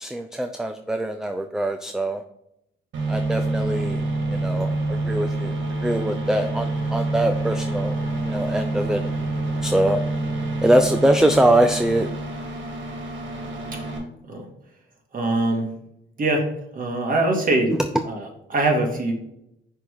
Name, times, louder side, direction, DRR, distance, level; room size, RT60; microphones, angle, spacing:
voice 1, 0.0-2.2 3.1-4.0 4.3-5.5 5.8-8.0 8.3-9.0 9.6-10.0 10.6-12.1, right 1 dB, 5° right, 7 dB, 0.4 m, -22 dB
sound 1, 2.9-14.0, right 2 dB, 70° right, 1.9 m, -27 dB
voice 2, 15.1-15.7 16.2-16.5 16.7-17.7 18.0-19.1, right 2 dB, 45° right, 2 dB, 1.8 m, -22 dB
5.8 x 3.5 x 4.7 m, 0.79 s
cardioid pair, 90°, 20 cm